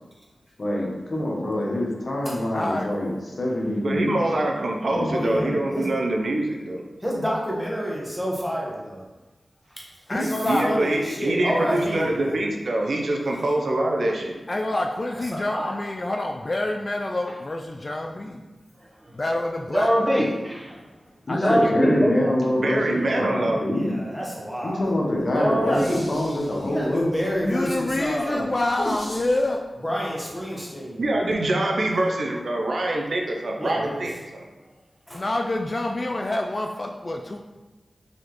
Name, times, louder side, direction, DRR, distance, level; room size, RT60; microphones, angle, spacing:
voice 1, 0.6-4.2 4.9-5.6 21.3-23.9 24.6-27.5 28.3-28.4 28.8-28.9, left 1 dB, 65° left, -3 dB, 0.9 m, -26 dB
voice 2, 2.5-2.9 10.1-10.7 14.5-18.4 19.1-19.9 21.3-21.6 27.5-29.6 35.1-37.4, left 2 dB, 50° left, 2 dB, 0.3 m, -27 dB
voice 3, 3.8-6.8 10.4-14.4 22.5-23.6 31.0-34.5, right 1 dB, 75° right, 0 dB, 0.5 m, -25 dB
voice 4, 5.1-5.9 7.0-9.0 10.1-10.3 10.6-12.3 15.3-15.7 23.7-24.8 25.6-26.0 26.6-28.4 29.8-31.0 33.6-34.0 35.1-35.2, equal, 5° left, -3 dB, 1.2 m, -29 dB
voice 5, 10.2-10.8 14.0-14.1 17.3-17.4 18.8-19.2 19.7-20.8 21.4-22.3 25.4-26.0 30.5-30.6, equal, 20° right, -4 dB, 1.1 m, -24 dB
sound 1, 25.5-29.6, left 1 dB, 85° left, 1.2 m, -45 dB
4.1 x 3.0 x 3.0 m, 1.2 s
cardioid pair, 40°, 0 cm